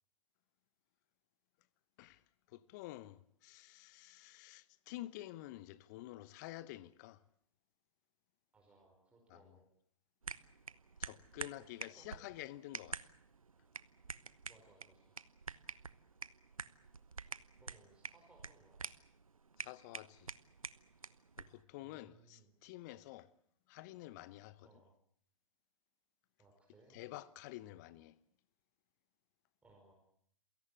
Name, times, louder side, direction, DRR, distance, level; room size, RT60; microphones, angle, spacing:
voice 1, 2.5-7.2 9.3-9.4 11.0-13.0 19.6-20.3 21.4-23.3 23.7-24.7 26.9-28.2, left 16 dB, 30° left, 0.9 m, -50 dB
voice 2, 8.5-9.7 11.4-12.5 14.5-15.2 16.8-18.8 21.8-22.5 24.6-24.9 26.4-27.0 29.6-29.9, right 2 dB, 5° right, 5.1 m, -66 dB
sound 1, 10.2-21.6, right 5 dB, 75° right, 1.0 m, -49 dB
28.0 x 17.5 x 8.4 m
figure-of-eight pair, 120°, 18 cm